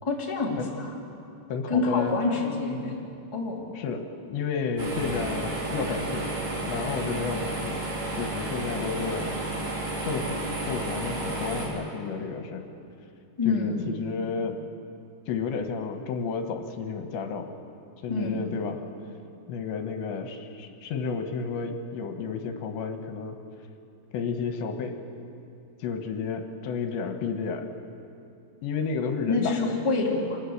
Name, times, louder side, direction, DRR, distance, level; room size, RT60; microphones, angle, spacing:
voice 1, 0.0-0.9 1.7-2.9 3.3-3.7 13.4-13.9 18.1-18.4 29.3-30.4, left 3 dB, 10° left, -3 dB, 2.4 m, -27 dB
voice 2, 1.5-2.2 3.7-6.3 6.6-7.9 8.1-9.4 10.0-12.6 13.5-14.6 15.3-17.5 18.0-18.8 19.5-23.4 24.1-24.9 25.8-27.7 28.6-29.8, left 5 dB, 80° left, 5 dB, 3.5 m, -31 dB
sound 1, 4.8-11.7, right 2 dB, 45° right, 5.3 m, -32 dB
26.5 x 20.5 x 8.1 m, 2.7 s
omnidirectional pair, 5.2 m